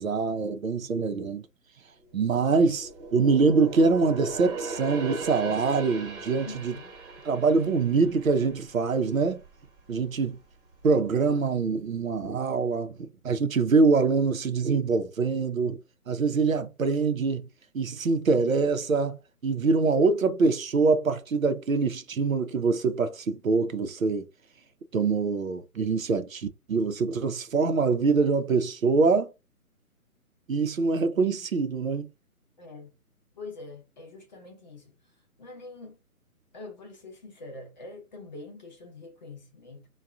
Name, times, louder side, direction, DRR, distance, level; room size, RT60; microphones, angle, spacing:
voice 1, 0.0-1.5 2.1-6.7 7.2-9.4 9.9-10.4 10.8-15.8 16.1-17.5 17.7-24.3 24.9-29.3 30.5-32.1, right 4 dB, 65° right, 0.7 m, -24 dB
sound 1, 2.1-9.6 9.9-10.2 10.7-11.4 11.8-11.9, right 3 dB, 35° right, 1.2 m, -39 dB
voice 2, 6.3-6.9 32.6-32.9 33.4-34.9 35.4-36.0 36.5-39.9, left 3 dB, 30° left, 0.8 m, -44 dB
4.5 x 2.3 x 2.5 m
figure-of-eight pair, 140°, 44 cm